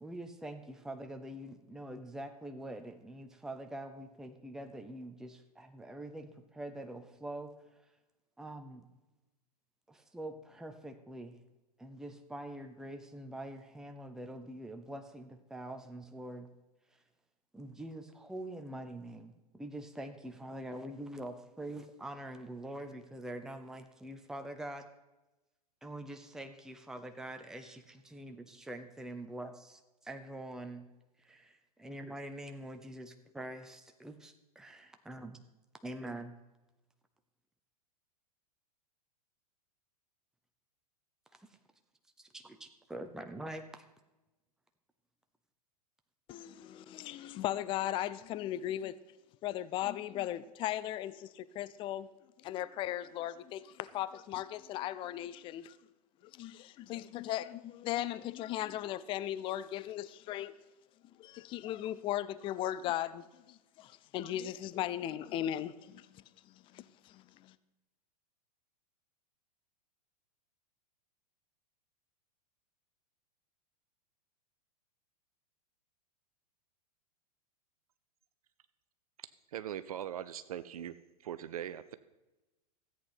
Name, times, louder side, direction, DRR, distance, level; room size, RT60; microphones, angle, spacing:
voice 1, 0.0-7.8 8.4-8.8 9.9-11.4 11.8-16.5 16.9-17.0 17.5-24.9 25.8-30.9 31.2-35.4 35.8-36.4 41.3-41.6 42.2-43.8, right 1 dB, 5° right, 7 dB, 0.7 m, -45 dB
voice 2, 46.3-49.0 49.4-52.1 52.4-55.8 56.3-60.5 61.2-67.5, left 12 dB, 25° left, 16 dB, 0.5 m, -37 dB
voice 3, 79.5-80.9 81.2-81.9, right 10 dB, 65° right, 13 dB, 0.5 m, -40 dB
14.0 x 8.4 x 5.7 m, 1.0 s
figure-of-eight pair, 100°, 21 cm